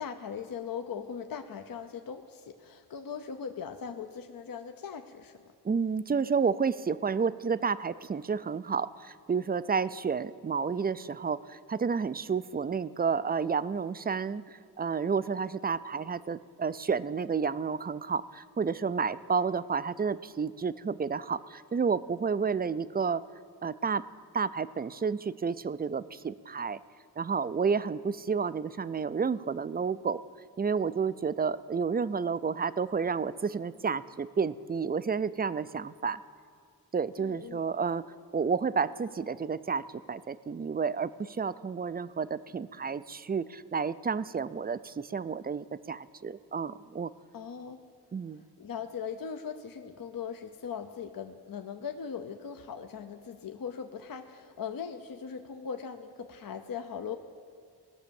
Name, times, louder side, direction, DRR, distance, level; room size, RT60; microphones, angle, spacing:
voice 1, 0.0-5.4 37.2-37.6 47.3-47.8 48.6-57.2, left 7 dB, 55° left, 7 dB, 0.7 m, -39 dB
voice 2, 5.6-23.2 23.6-24.0 24.3-26.8 27.2-30.2 30.6-36.2 36.9-38.0 38.3-47.1 48.1-48.4, right 5 dB, 25° right, 16 dB, 0.3 m, -30 dB
18.0 x 6.2 x 7.0 m, 2.2 s
cardioid pair, 55°, 41 cm